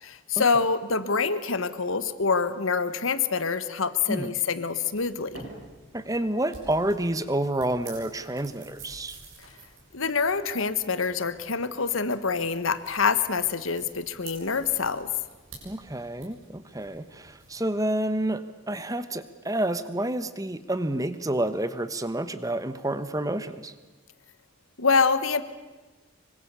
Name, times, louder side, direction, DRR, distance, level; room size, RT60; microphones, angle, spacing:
voice 1, 0.0-5.4 9.9-15.1 24.8-25.4, left 5 dB, 75° left, 13 dB, 1.4 m, -26 dB
sound 1, 4.9-17.6, right 3 dB, 75° right, 7.2 m, -49 dB
voice 2, 5.9-9.2 15.6-23.7, right 1 dB, 15° right, 12 dB, 1.1 m, -29 dB
25.5 x 24.5 x 6.9 m, 1.2 s
head